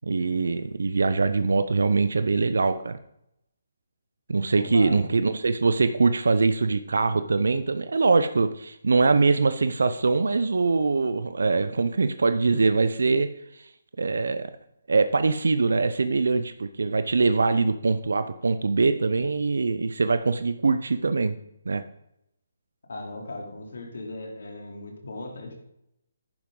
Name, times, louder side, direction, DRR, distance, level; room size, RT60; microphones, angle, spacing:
voice 1, 0.0-3.0 4.3-13.3 14.0-14.5 14.9-21.4 21.7-21.8, right 4 dB, 75° right, 11 dB, 0.7 m, -23 dB
voice 2, 4.5-5.0 22.9-25.6, left 2 dB, 70° left, 2 dB, 3.2 m, -37 dB
11.0 x 9.6 x 3.9 m, 0.78 s
figure-of-eight pair, 150°, 0 cm